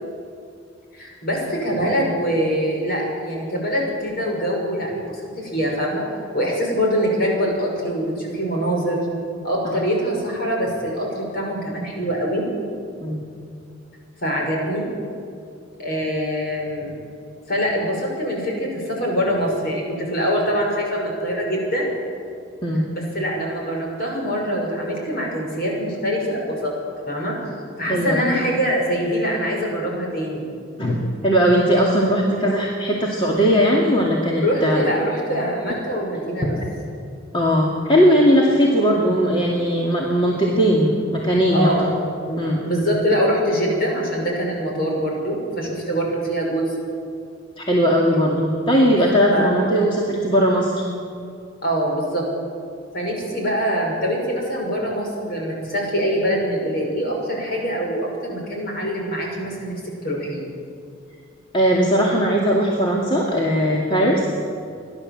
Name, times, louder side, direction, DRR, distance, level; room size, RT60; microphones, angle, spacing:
voice 1, 0.9-6.0 6.3-9.0 9.4-12.4 14.2-14.9 15.8-16.9 17.5-21.9 22.9-26.7 27.1-27.3 27.8-30.5 34.4-36.5 41.5-41.8 42.3-46.6 49.3-49.5 51.6-52.2 52.9-60.4, equal, 50° left, -1 dB, 6.2 m, -24 dB
voice 2, 27.9-28.2 30.8-31.0 31.2-34.8 36.6-36.7 37.3-41.9 42.4-42.6 47.6-50.8 61.5-64.2, equal, 25° left, -3 dB, 2.3 m, -18 dB
30.0 x 12.0 x 7.6 m, 2.4 s
head